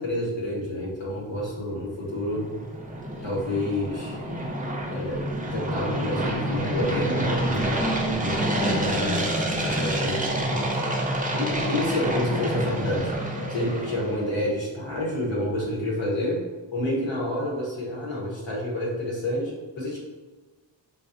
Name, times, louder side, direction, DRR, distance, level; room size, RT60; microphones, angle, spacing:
voice 1, 0.0-2.5 3.2-4.2 4.9-5.2 5.5-9.3 9.6-10.7 11.3-13.1 13.5-16.4 16.7-20.0, left 1 dB, 85° left, -4 dB, 1.1 m, -29 dB
sound 1, 2.0-14.3, right 1 dB, 20° right, 0.5 m, -28 dB
4.0 x 2.3 x 2.6 m, 1.3 s
wide cardioid pair, 80°, 44 cm